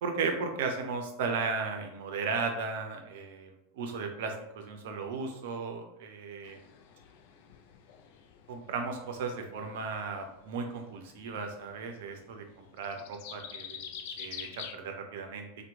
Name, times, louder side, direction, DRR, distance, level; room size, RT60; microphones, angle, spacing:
voice 1, 0.0-6.6 8.5-13.9 14.2-15.6, right 4 dB, 60° right, 4 dB, 0.5 m, -35 dB
sound 1, 6.4-14.7, left 8 dB, 60° left, 0.3 m, -48 dB
2.9 x 2.1 x 3.4 m, 0.85 s
figure-of-eight pair, 90°, 0 cm